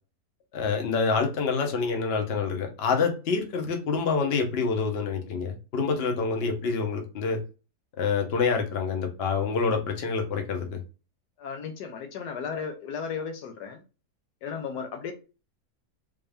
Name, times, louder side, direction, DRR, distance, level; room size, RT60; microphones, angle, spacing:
voice 1, 0.5-7.4 8.0-10.8, left 5 dB, 45° left, 3 dB, 0.9 m, -27 dB
voice 2, 11.4-13.8 14.4-15.1, left 6 dB, 80° left, 5 dB, 1.3 m, -35 dB
3.5 x 2.6 x 3.4 m, 0.32 s
omnidirectional pair, 1.7 m